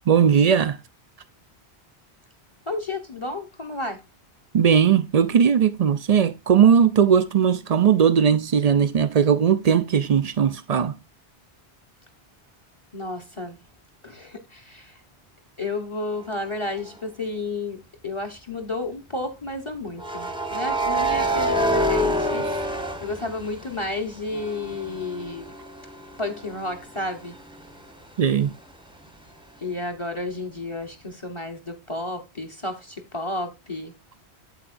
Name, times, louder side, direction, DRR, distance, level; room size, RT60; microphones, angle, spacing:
voice 1, 0.1-0.8 4.5-10.9 28.2-28.5, right 7 dB, 50° right, 0.5 m, -18 dB
voice 2, 2.7-4.0 12.9-13.6 14.0-15.0 15.6-25.5 26.2-27.4 29.6-33.9, left 2 dB, 30° left, 1.0 m, -32 dB
sound 1, 16.7-16.9 20.0-23.9 24.3-27.8, right 1 dB, 5° right, 0.8 m, -27 dB
8.1 x 8.0 x 2.5 m
omnidirectional pair, 1.1 m